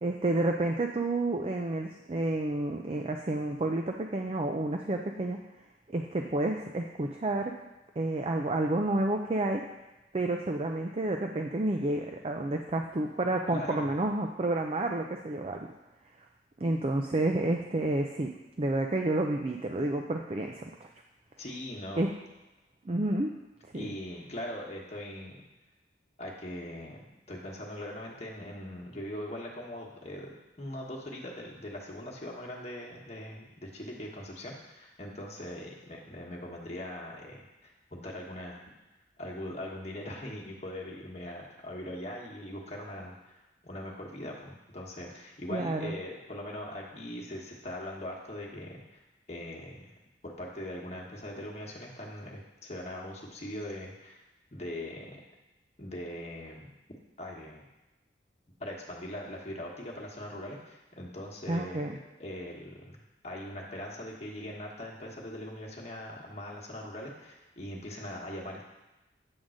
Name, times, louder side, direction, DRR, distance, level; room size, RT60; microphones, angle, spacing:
voice 1, 0.0-5.4 5.9-7.5 8.0-9.6 10.1-15.6 16.6-18.3 18.6-20.9 22.0-22.1 22.9-23.3 23.7-23.9 45.5-45.9 61.5-62.0, right 2 dB, 35° right, 2 dB, 0.5 m, -30 dB
voice 2, 13.5-13.9 21.4-22.1 23.7-25.4 26.2-38.6 39.2-49.0 49.3-49.9 50.2-54.2 54.5-55.2 55.8-56.7 57.2-57.6 58.6-61.9 62.2-68.7, left 1 dB, 35° left, -2 dB, 1.3 m, -41 dB
8.8 x 3.8 x 6.3 m, 1.0 s
head